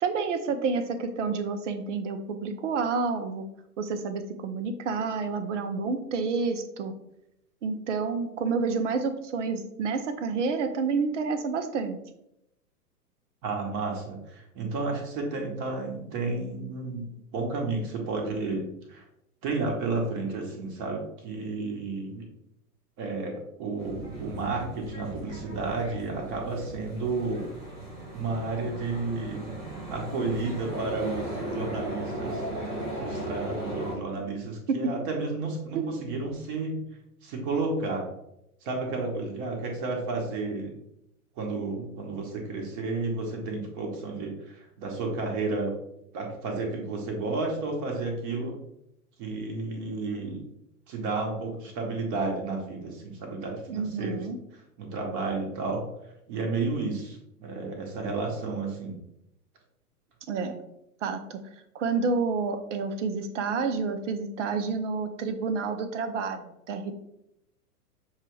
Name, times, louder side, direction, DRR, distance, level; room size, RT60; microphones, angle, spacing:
voice 1, 0.0-3.5 3.8-6.9 7.6-12.0 34.7-34.9 35.7-36.0 53.7-54.4 60.3-60.6 61.0-61.4 61.7-67.0, right 4 dB, 50° right, 8 dB, 0.7 m, -29 dB
voice 2, 13.4-17.0 17.3-19.0 19.4-22.2 23.0-27.4 28.1-29.5 29.9-32.4 33.0-36.8 37.2-38.1 38.6-40.8 41.4-45.7 46.1-48.5 49.2-50.4 50.9-54.3 54.5-55.8 56.3-59.0, right 3 dB, 35° right, 1 dB, 1.2 m, -32 dB
sound 1, 23.8-34.0, right 1 dB, 10° right, 0.4 m, -36 dB
6.5 x 2.3 x 3.1 m, 0.81 s
figure-of-eight pair, 110°, 47 cm